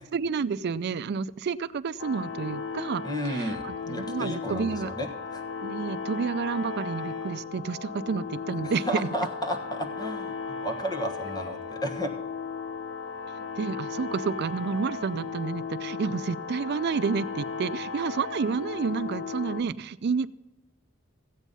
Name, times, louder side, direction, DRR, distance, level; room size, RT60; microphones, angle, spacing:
voice 1, 0.1-3.0 3.3-4.9 5.6-8.9 13.6-20.3, right 5 dB, 50° right, 14 dB, 0.4 m, -30 dB
sound 1, 2.0-19.6, left 5 dB, 85° left, 0.8 m, -36 dB
voice 2, 3.0-5.4 8.6-12.1, equal, 20° left, 4 dB, 1.3 m, -33 dB
15.0 x 8.2 x 5.4 m, 1.1 s
head